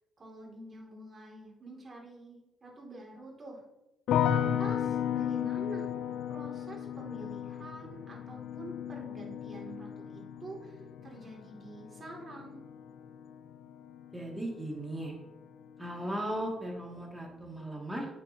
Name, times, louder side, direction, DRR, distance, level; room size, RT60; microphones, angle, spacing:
voice 1, 0.2-3.6 4.3-5.9 6.3-12.6, right 2 dB, 35° right, -1 dB, 2.5 m, -47 dB
sound 1, 4.1-15.1 15.4-16.2, left 9 dB, 80° left, 0.4 m, -35 dB
voice 2, 14.1-15.1 15.8-18.1, right 1 dB, 10° right, -2 dB, 2.2 m, -37 dB
8.3 x 6.2 x 2.8 m, 0.92 s
cardioid pair, 90°, 0 cm